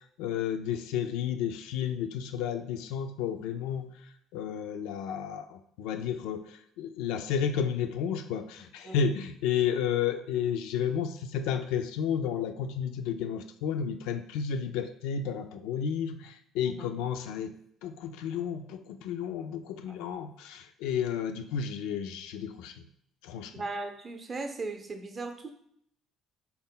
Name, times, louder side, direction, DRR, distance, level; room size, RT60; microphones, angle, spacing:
voice 1, 0.2-3.9 4.3-17.5 17.8-22.7 23.2-23.5, left 8 dB, 85° left, 8 dB, 0.3 m, -32 dB
voice 2, 23.5-25.5, right 3 dB, 35° right, 5 dB, 0.6 m, -37 dB
4.1 x 2.1 x 3.7 m, 0.69 s
supercardioid pair, 90°, 0 cm